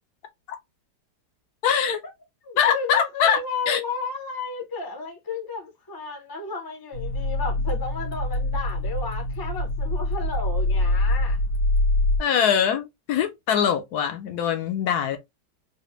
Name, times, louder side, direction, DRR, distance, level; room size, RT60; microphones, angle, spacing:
voice 1, 1.6-2.0 2.6-3.8 12.2-15.2, left 8 dB, 70° left, 1.1 m, -23 dB
voice 2, 2.4-11.4, left 4 dB, 30° left, 0.4 m, -33 dB
sound 1, 6.9-12.2, left 1 dB, 90° left, 1.8 m, -24 dB
4.1 x 2.1 x 3.0 m
omnidirectional pair, 1.9 m